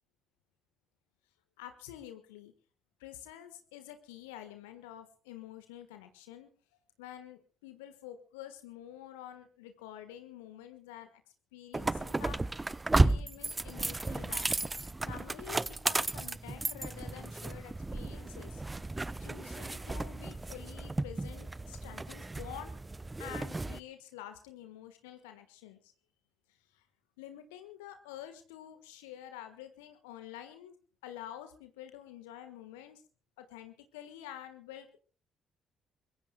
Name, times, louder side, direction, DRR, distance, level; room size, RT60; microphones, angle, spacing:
voice 1, 1.6-2.5 3.0-6.5 7.0-11.2 11.5-12.4 13.0-14.4 15.0-18.6 19.2-22.8 23.2-25.9 26.5-26.8 27.2-30.7 31.0-33.0 33.4-35.0, left 11 dB, 70° left, 8 dB, 1.4 m, -48 dB
sound 1, 11.7-23.8, right 2 dB, 20° right, 0.8 m, -33 dB
24.0 x 22.5 x 2.3 m, 0.39 s
figure-of-eight pair, 45°, 0 cm